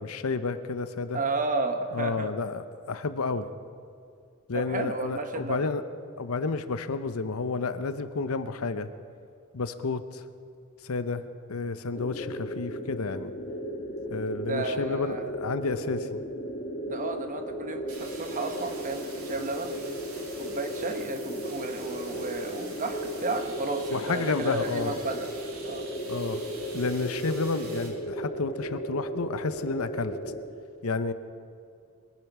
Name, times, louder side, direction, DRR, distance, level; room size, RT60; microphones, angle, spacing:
voice 1, 0.0-1.2 1.9-3.5 4.5-5.8 6.2-8.9 9.5-10.2 10.8-11.2 11.5-13.3 14.1-16.2 23.9-25.0 26.1-26.4 26.7-30.1 30.8-31.1, left 4 dB, 85° left, 11 dB, 0.7 m, -30 dB
voice 2, 1.1-2.3 4.5-5.7 14.4-15.2 16.9-19.8 20.4-25.3 25.6-25.9, right 3 dB, 40° right, 7 dB, 1.1 m, -33 dB
sound 1, 11.9-30.4, equal, 45° left, 1.7 m, -35 dB
sound 2, 17.9-27.9, right 3 dB, 85° right, 2.7 m, -46 dB
22.0 x 9.1 x 6.0 m, 2.4 s
head